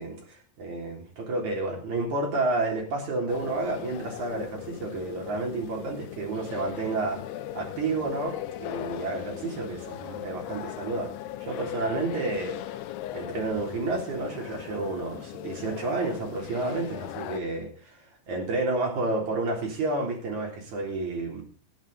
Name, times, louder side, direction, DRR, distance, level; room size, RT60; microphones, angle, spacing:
voice 1, 0.0-7.2 7.5-11.1 11.4-12.6 13.1-18.0 18.3-21.4, right 2 dB, 45° right, 0 dB, 4.5 m, -30 dB
sound 1, 3.3-17.4, left 13 dB, 80° left, 2.7 m, -39 dB
15.5 x 10.5 x 3.9 m, 0.41 s
omnidirectional pair, 4.8 m